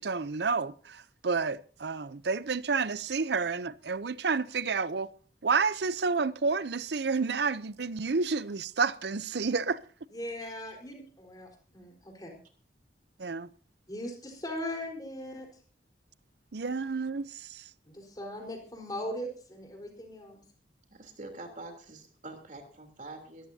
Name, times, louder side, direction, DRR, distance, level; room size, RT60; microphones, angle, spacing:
voice 1, 0.0-5.1 5.4-9.8 13.2-13.5 16.5-17.6, right 4 dB, 65° right, 0.6 m, -30 dB
voice 2, 10.1-12.4 13.9-15.6 17.9-20.4, left 1 dB, 20° left, 4.3 m, -39 dB
voice 3, 20.9-23.5, right 2 dB, 45° right, 3.4 m, -45 dB
22.5 x 14.5 x 2.8 m
head